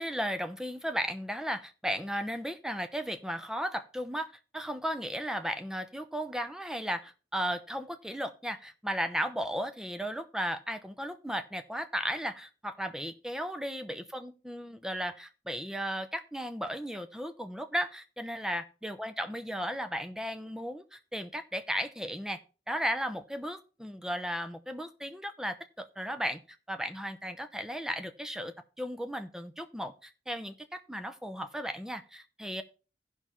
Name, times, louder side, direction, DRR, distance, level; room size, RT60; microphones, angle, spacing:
voice 1, 0.0-22.4 22.7-26.4 26.7-32.6, equal, 5° right, 9 dB, 0.6 m, -35 dB
16.0 x 5.6 x 3.1 m, 0.35 s
head